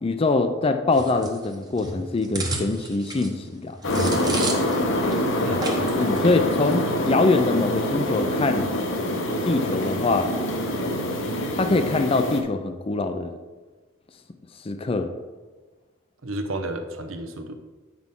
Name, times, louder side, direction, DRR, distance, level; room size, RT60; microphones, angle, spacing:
voice 1, 0.0-3.8 6.0-8.7 9.5-10.3 11.5-13.3 14.6-15.1, left 3 dB, 25° left, 7 dB, 0.4 m, -23 dB
sound 1, 0.9-4.9 5.1-5.2 5.6-6.2 6.5-6.7, right 2 dB, 20° right, 0.9 m, -32 dB
sound 2, 3.8-12.4, left 1 dB, 65° left, 0.9 m, -25 dB
voice 2, 16.2-17.5, right 1 dB, 75° right, 6 dB, 0.8 m, -31 dB
8.6 x 6.0 x 3.7 m, 1.3 s
head